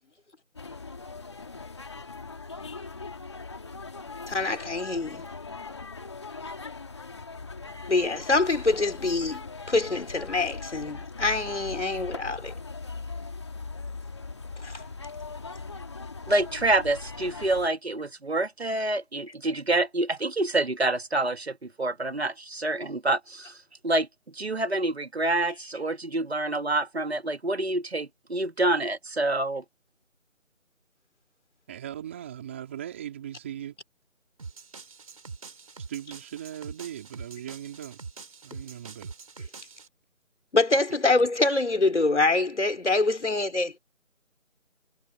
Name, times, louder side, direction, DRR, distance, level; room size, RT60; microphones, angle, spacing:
sound 1, 0.5-17.7, left 4 dB, 20° left, 2.1 m, -40 dB
voice 1, 4.3-5.2 7.9-12.5 14.6-14.8 40.5-43.8, left 3 dB, 55° left, 4.7 m, -25 dB
voice 2, 16.3-23.6 23.8-24.1 24.3-29.6, right 2 dB, 50° right, 2.0 m, -27 dB
voice 3, 31.7-33.8 35.8-38.0 38.4-39.1, right 10 dB, 10° right, 3.3 m, -39 dB
sound 2, 34.4-39.9, right 4 dB, 25° right, 3.7 m, -44 dB
figure-of-eight pair, 170°, 41 cm